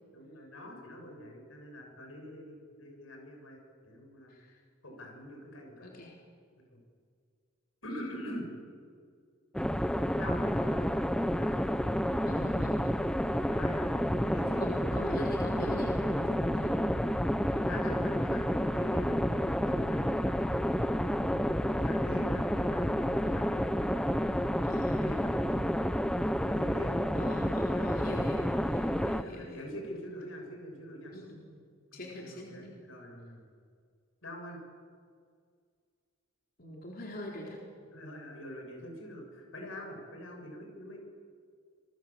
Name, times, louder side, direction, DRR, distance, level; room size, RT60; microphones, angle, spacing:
voice 1, 0.1-4.3 4.8-5.9 6.7-6.8 7.8-8.5 9.8-10.9 11.3-11.6 13.5-13.9 14.2-15.0 16.0-16.9 17.6-20.8 21.6-26.0 26.5-27.1 27.4-28.2 28.9-31.2 31.9-33.4 34.2-34.6 37.9-41.0, equal, 90° left, 2 dB, 7.5 m, -44 dB
voice 2, 4.3-4.6 5.8-6.2 7.9-8.1 10.6-10.8 12.2-13.2 14.6-16.8 24.7-25.1 27.1-29.7 31.1-31.6 31.9-32.7 36.6-37.6, left 1 dB, 45° left, -1 dB, 3.8 m, -43 dB
sound 1, 9.5-29.2, equal, 5° left, 0.7 m, -30 dB
27.0 x 22.0 x 7.6 m, 2.1 s
head